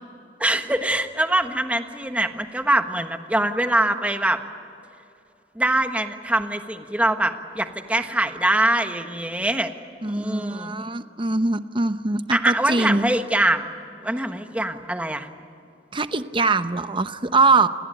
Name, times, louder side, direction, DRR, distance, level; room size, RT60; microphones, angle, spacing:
voice 1, 0.4-4.4 5.5-9.7 10.0-10.7 12.3-13.7 14.0-15.3, right 1 dB, 10° right, 7 dB, 1.4 m, -23 dB
voice 2, 10.0-13.1 15.9-17.7, right 3 dB, 30° right, 11 dB, 0.9 m, -22 dB
29.5 x 19.5 x 9.1 m, 2.6 s
head